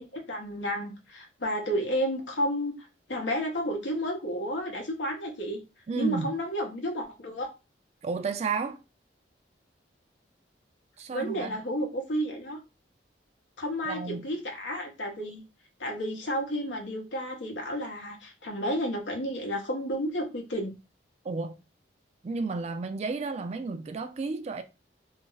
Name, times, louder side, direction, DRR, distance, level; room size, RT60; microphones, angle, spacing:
voice 1, 0.0-2.7 3.1-5.6 6.0-7.5 11.1-12.6 13.6-15.4 15.8-20.7, equal, 85° left, 0.8 m, -31 dB
voice 2, 5.9-6.3 8.0-8.8 11.0-11.6 13.8-14.3 21.2-21.6 22.2-24.6, right 4 dB, 35° right, 0.3 m, -32 dB
2.4 x 2.0 x 3.8 m
head